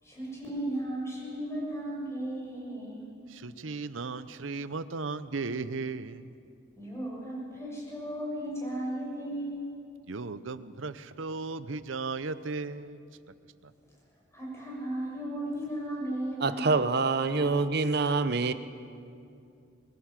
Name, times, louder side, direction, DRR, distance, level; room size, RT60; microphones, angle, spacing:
voice 1, 0.0-3.1 6.7-9.7 14.3-16.9, right 1 dB, 15° left, -4 dB, 6.8 m, -35 dB
voice 2, 3.3-6.4 10.1-13.0 13.6-13.7, right 4 dB, 90° right, 14 dB, 0.7 m, -36 dB
voice 3, 16.4-18.5, right 3 dB, 55° right, 12 dB, 0.7 m, -26 dB
22.0 x 15.5 x 7.5 m, 2.5 s
head